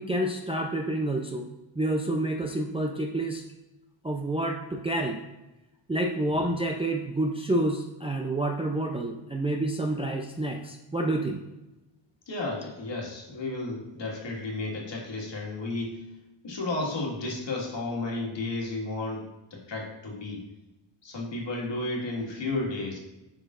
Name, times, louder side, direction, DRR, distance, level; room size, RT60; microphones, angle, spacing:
voice 1, 0.0-1.4 1.8-3.4 4.0-5.2 5.9-11.4, right 1 dB, 10° right, 1 dB, 0.4 m, -28 dB
voice 2, 12.3-16.1 16.4-20.4 21.0-23.0, left 2 dB, 60° left, -1 dB, 1.8 m, -33 dB
10.5 x 5.1 x 2.5 m, 1.0 s
wide cardioid pair, 130°, 50 cm